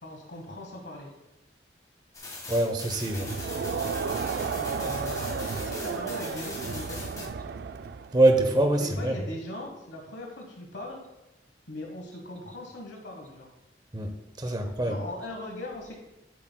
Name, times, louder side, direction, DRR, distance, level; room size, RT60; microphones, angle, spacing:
voice 1, 0.0-1.1 4.6-7.3 8.8-11.0 11.7-13.5 14.4-14.5 14.8-16.0, left 1 dB, 85° left, 1 dB, 1.2 m, -40 dB
sound 1, 2.1-7.3, left 2 dB, 20° left, 1.5 m, -41 dB
voice 2, 2.5-3.3 8.1-9.2 13.9-14.1 14.4-14.9, right 2 dB, 25° right, 5 dB, 0.7 m, -23 dB
Crowd, 3.1-8.2, right 5 dB, 65° right, 0.4 m, -33 dB
12.0 x 7.5 x 2.2 m, 0.97 s
head